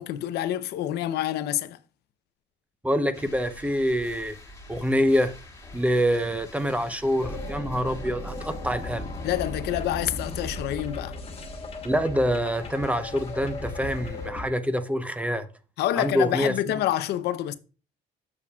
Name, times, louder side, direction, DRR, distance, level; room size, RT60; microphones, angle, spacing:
voice 1, 0.0-1.8 9.2-11.2 15.8-17.6, left 13 dB, 75° left, 0.7 m, -27 dB
voice 2, 2.8-4.4 4.7-5.3 5.7-9.0 11.8-15.5 16.0-16.5, equal, 10° right, 0.7 m, -25 dB
sound 1, 3.1-14.3, left 1 dB, 15° left, 1.7 m, -48 dB
sound 2, 7.2-14.5, left 2 dB, 35° left, 1.2 m, -36 dB
8.4 x 6.5 x 2.3 m
cardioid pair, 110°, 17 cm